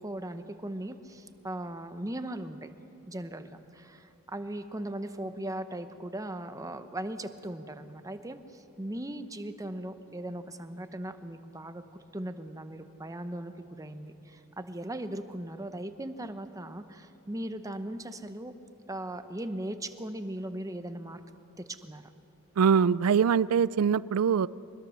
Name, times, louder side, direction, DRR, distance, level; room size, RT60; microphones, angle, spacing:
voice 1, 0.0-2.7 3.1-11.9 12.1-18.5 18.9-21.2 21.6-22.1, right 1 dB, 15° right, 9 dB, 0.9 m, -38 dB
voice 2, 22.6-24.5, right 7 dB, 85° right, 20 dB, 0.4 m, -23 dB
24.5 x 21.0 x 6.4 m, 2.9 s
head